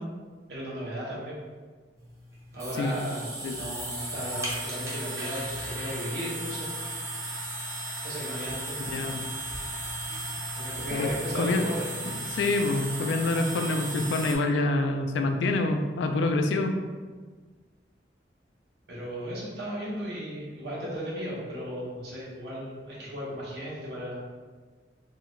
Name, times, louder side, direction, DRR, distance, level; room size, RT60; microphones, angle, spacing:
voice 1, 0.5-1.4 2.5-3.3 3.5-6.7 8.0-8.8 10.6-11.9 18.9-24.2, equal, 70° right, -6 dB, 0.9 m, -35 dB
sound 1, 2.0-14.4, right 1 dB, 20° right, 0.5 m, -35 dB
voice 2, 8.8-9.3 10.9-11.1 11.3-11.6 12.1-16.7, left 2 dB, 90° left, 5 dB, 0.3 m, -27 dB
2.7 x 2.4 x 3.1 m, 1.5 s
head